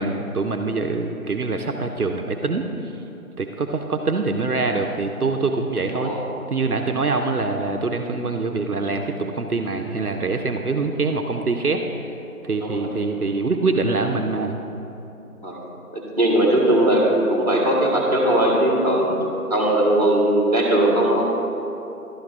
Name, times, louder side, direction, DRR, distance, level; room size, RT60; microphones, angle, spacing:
voice 1, 0.0-2.7 3.4-6.1 6.5-11.9 12.4-14.5, right 3 dB, 70° right, 4 dB, 0.7 m, -24 dB
voice 2, 12.6-12.9 15.4-15.6 15.9-19.1 19.5-21.3, right 1 dB, 25° right, -2 dB, 1.3 m, -19 dB
11.5 x 5.8 x 4.4 m, 2.9 s
figure-of-eight pair, 170°, 46 cm